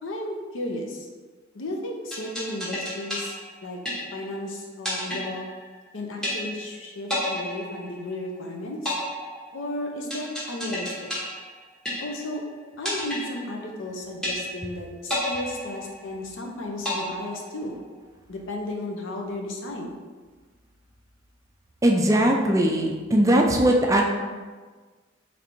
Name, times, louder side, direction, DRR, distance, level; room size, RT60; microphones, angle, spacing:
voice 1, 0.0-1.1 1.5-3.4 3.6-3.8 4.1-5.5 5.9-8.9 9.5-11.1 12.0-12.4 12.8-17.7 18.3-19.9, left 1 dB, 80° left, 1 dB, 0.6 m, -34 dB
sound 1, 2.1-4.4 4.8-5.9 6.2-6.8 7.1-8.4 8.9-12.4 12.9-13.9 14.2-14.8 15.1-16.4 16.8-17.9, equal, 5° left, 0.8 m, -32 dB
voice 2, 21.8-24.0, right 1 dB, 15° right, 1 dB, 0.3 m, -20 dB
4.2 x 3.3 x 2.6 m, 1.4 s
head